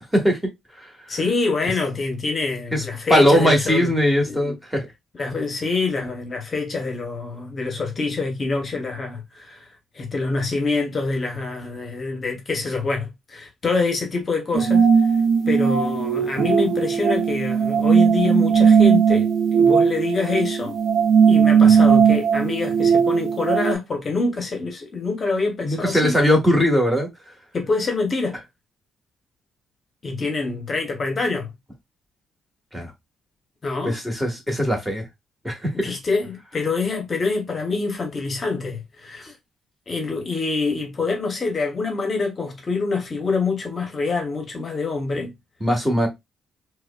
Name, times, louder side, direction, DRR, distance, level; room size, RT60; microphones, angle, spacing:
voice 1, 1.1-3.9 4.2-4.5 5.1-9.7 9.9-14.9 15.5-20.8 21.3-26.1 27.5-28.4 30.0-31.5 33.6-34.0 35.7-39.3 39.9-45.3, left 3 dB, 40° left, 0.8 m, -25 dB
voice 2, 3.1-4.8 25.6-27.1 32.7-32.9 33.8-35.0 35.4-35.7 45.6-46.1, equal, 5° right, 1.4 m, -19 dB
sound 1, 14.5-23.7, right 6 dB, 65° right, 0.6 m, -17 dB
4.7 x 2.2 x 2.3 m
cardioid pair, 90°, 0 cm